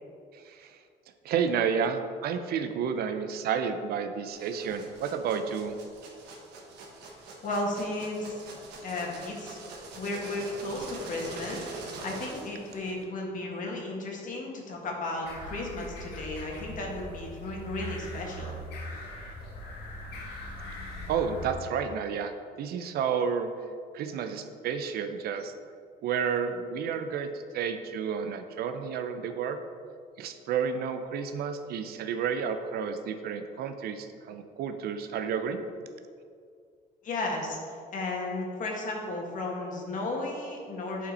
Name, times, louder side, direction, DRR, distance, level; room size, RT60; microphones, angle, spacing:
voice 1, 1.2-5.8 21.1-23.5 23.9-25.5 26.0-27.3 27.5-29.6 30.2-35.6, right 7 dB, 65° right, 8 dB, 0.6 m, -31 dB
sound 1, 4.3-13.0, right 2 dB, 85° right, 1.2 m, -44 dB
voice 2, 7.0-8.4 8.8-9.6 9.9-18.5 37.0-37.6 37.9-41.1, left 2 dB, 50° left, 0 dB, 1.6 m, -34 dB
sound 2, 15.2-21.5, equal, 75° left, 1.5 m, -40 dB
8.3 x 4.4 x 4.1 m, 2.3 s
cardioid pair, 110°, 17 cm